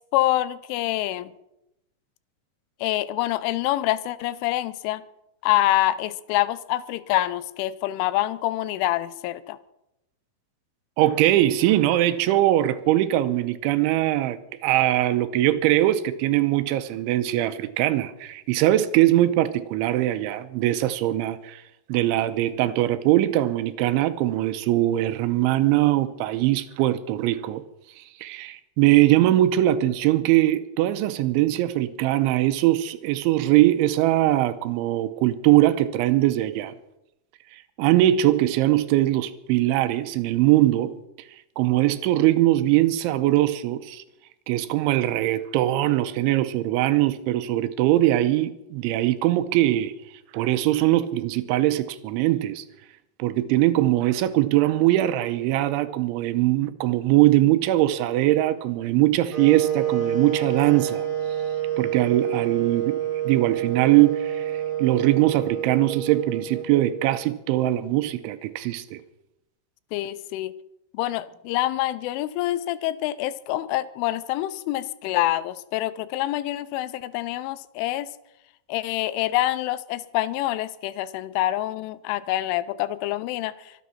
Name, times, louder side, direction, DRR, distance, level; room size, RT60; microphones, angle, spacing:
voice 1, 0.1-1.3 2.8-5.0 5.4-9.6 69.9-70.5 70.9-78.1 78.7-83.7, left 15 dB, 85° left, 3.2 m, -26 dB
voice 2, 11.0-21.6 21.9-27.6 28.0-36.7 37.8-40.9 41.6-44.0 44.5-49.9 50.3-52.6 53.2-61.1 61.8-63.0 63.3-69.0, right 15 dB, 85° right, 3.1 m, -21 dB
sound 1, 59.3-67.3, right 10 dB, 40° right, 0.7 m, -28 dB
24.0 x 9.4 x 5.8 m
omnidirectional pair, 5.5 m